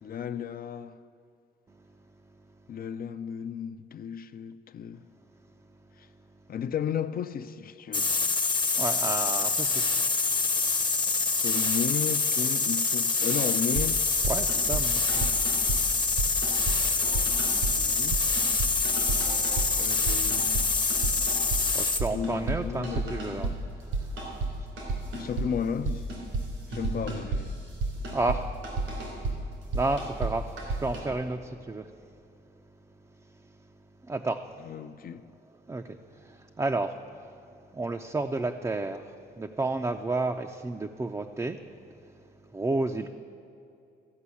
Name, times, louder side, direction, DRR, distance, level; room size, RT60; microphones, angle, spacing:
voice 1, 0.0-1.0 2.7-5.0 6.5-8.3 11.4-14.0 17.4-18.2 18.7-18.8 19.8-20.8 22.1-23.6 25.1-26.1 26.7-27.5 34.6-35.3, left 8 dB, 50° left, 0.5 m, -34 dB
sound 1, 7.9-22.1, left 4 dB, 20° left, 0.8 m, -26 dB
voice 2, 8.8-10.4 14.2-15.6 21.7-23.5 23.8-24.2 24.6-24.7 28.1-29.5 29.7-31.9 33.2-33.5 34.0-34.5 35.1-35.2 35.7-37.4 37.7-41.6 42.0-42.1 42.5-43.1, right 2 dB, 15° right, 0.4 m, -32 dB
sound 2, 13.7-13.9 14.2-14.8 15.1-15.8 16.2-16.8 17.0-17.7 18.1-19.7 20.1-20.7 20.9-21.6 21.9-22.6 22.8-23.5 23.9-24.5 24.8-25.5 25.8-26.5 26.7-28.4 28.6-29.3 29.7-30.3 30.6-31.0, right 3 dB, 90° right, 3.2 m, -31 dB
14.0 x 5.4 x 8.4 m
cardioid pair, 90°, 20 cm